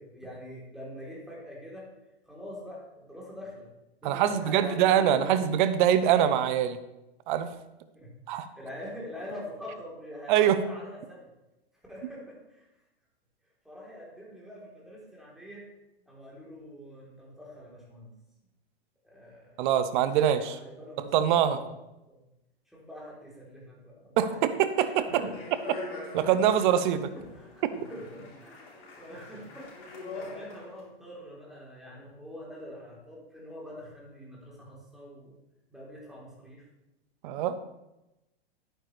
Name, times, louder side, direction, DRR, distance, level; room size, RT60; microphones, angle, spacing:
voice 1, 0.0-1.9 2.2-3.7 4.0-5.3 8.0-11.3 11.9-12.7 13.6-15.6 16.1-18.1 19.0-19.6 20.0-21.7 22.1-22.2 22.7-24.4 24.8-25.4 27.1-35.4 35.7-36.7, equal, ahead, -5 dB, 3.6 m, -44 dB
voice 2, 4.0-6.8 7.3-7.5 8.3-8.5 10.3-10.6 19.6-20.6 21.1-21.6 24.2-25.1 26.1-27.1 37.2-37.6, right 10 dB, 50° right, 12 dB, 0.9 m, -24 dB
Speech, 25.0-30.8, left 3 dB, 50° left, 3.7 m, -43 dB
10.5 x 9.2 x 3.3 m, 0.94 s
hypercardioid pair, 120°, 32 cm